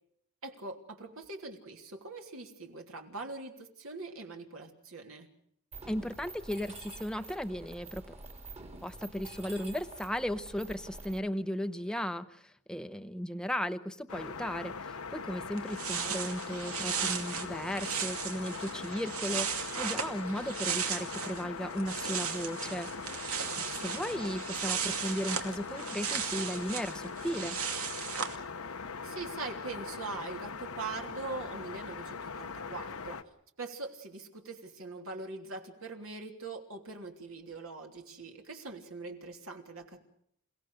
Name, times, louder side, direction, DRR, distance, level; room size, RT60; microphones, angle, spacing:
voice 1, 0.4-5.3 15.9-16.2 23.8-24.4 29.0-33.2 33.6-40.0, right 3 dB, 70° right, 3 dB, 3.2 m, -42 dB
Mechanisms, 5.7-11.2, right 2 dB, 30° right, 2.4 m, -48 dB
voice 2, 5.9-8.2 8.8-22.9 23.2-23.3 23.5-27.6, equal, 5° left, 8 dB, 0.8 m, -36 dB
sound 1, 14.1-33.2, left 5 dB, 85° left, 1.2 m, -41 dB
sound 2, 15.3-15.4 15.6-21.4 21.7-28.3, right 7 dB, 90° right, 2.5 m, -36 dB
29.0 x 17.5 x 6.5 m, 0.69 s
head